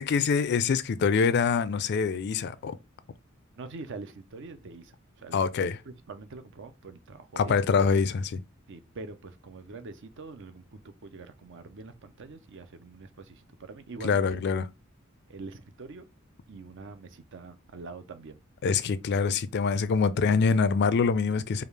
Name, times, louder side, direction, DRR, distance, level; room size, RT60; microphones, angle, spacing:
voice 1, 0.0-2.8 5.3-5.8 7.4-8.4 14.0-14.6 18.6-21.6, left 5 dB, 55° left, 0.4 m, -25 dB
voice 2, 3.6-7.6 8.7-14.4 15.3-16.1 16.5-18.4, right 3 dB, 60° right, 0.6 m, -44 dB
5.0 x 2.4 x 3.3 m
head